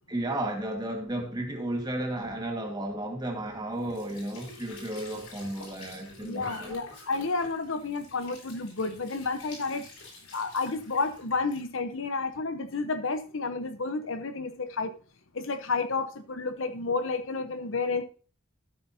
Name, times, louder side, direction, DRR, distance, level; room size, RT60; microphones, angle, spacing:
voice 1, 0.1-6.8, right 1 dB, 20° right, 1.6 m, -33 dB
Squeak / Sink (filling or washing) / Trickle dribble, 3.7-11.6, left 2 dB, 85° left, 5.3 m, -48 dB
voice 2, 6.2-9.8 10.3-14.9 15.3-18.0, left 3 dB, 65° left, 0.9 m, -31 dB
13.0 x 8.4 x 2.7 m
head